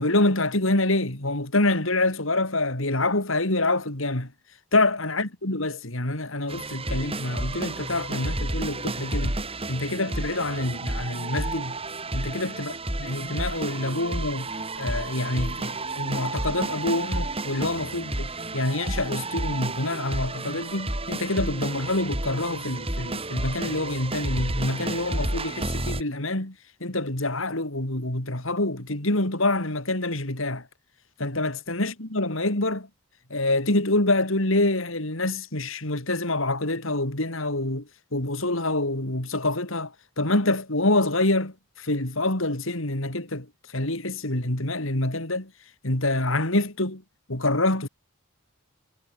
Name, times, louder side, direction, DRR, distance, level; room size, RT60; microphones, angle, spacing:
voice 1, 0.0-4.3 4.7-9.4 9.7-11.8 12.1-12.7 13.0-14.5 14.8-26.6 26.8-30.7 31.2-32.9 33.3-43.5 43.7-45.5 45.8-47.0 47.3-47.9, left 2 dB, 65° left, 3.9 m, -26 dB
sound 1, 6.5-26.0, right 2 dB, 25° right, 5.3 m, -31 dB
head